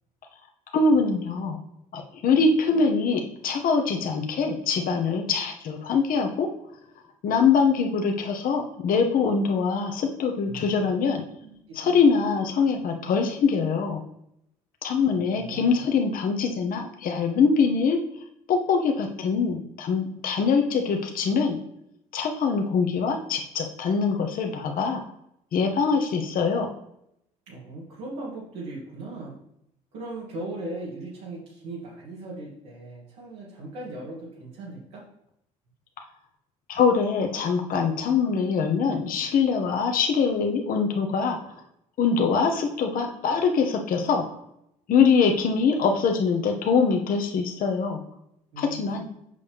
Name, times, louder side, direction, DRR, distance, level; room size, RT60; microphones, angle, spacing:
voice 1, 0.7-1.6 1.9-6.5 7.2-11.2 11.7-14.0 14.8-18.0 18.5-21.6 22.1-25.0 25.5-26.7 36.7-41.4 42.0-44.2 44.9-48.0 48.6-49.0, left 5 dB, 60° left, 3 dB, 1.0 m, -23 dB
voice 2, 10.4-11.1 11.4-12.0 12.6-12.7 15.1-15.8 27.5-29.3 29.9-35.0 48.5-49.0, right 2 dB, 85° right, -6 dB, 1.7 m, -38 dB
6.8 x 5.3 x 3.4 m, 0.77 s
hypercardioid pair, 65°, 17 cm